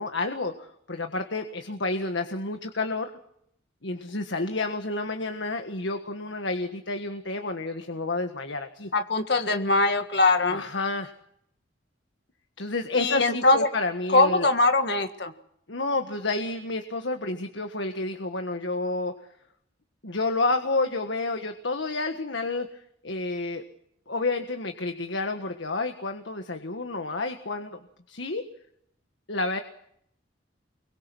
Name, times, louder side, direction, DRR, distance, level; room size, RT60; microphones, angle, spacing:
voice 1, 0.0-3.1 3.8-8.9 10.5-11.1 12.6-14.5 15.7-19.1 20.0-22.7 23.0-23.6 24.1-27.8 28.1-28.4 29.3-29.6, left 3 dB, 75° left, 6 dB, 1.6 m, -30 dB
voice 2, 8.9-10.6 12.9-13.7 14.1-15.3, left 2 dB, 60° left, 6 dB, 1.7 m, -22 dB
25.5 x 23.0 x 6.2 m, 0.71 s
head